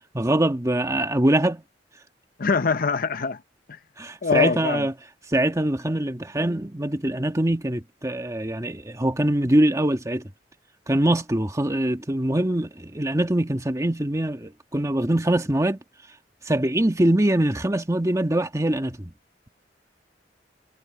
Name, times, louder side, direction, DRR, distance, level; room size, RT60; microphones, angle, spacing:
voice 1, 0.0-1.6 4.0-4.9 5.3-10.2 10.9-15.8 16.5-19.1, right 1 dB, 20° right, 1.5 m, -23 dB
voice 2, 2.4-3.4 4.2-4.9, left 4 dB, 55° left, 0.7 m, -23 dB
head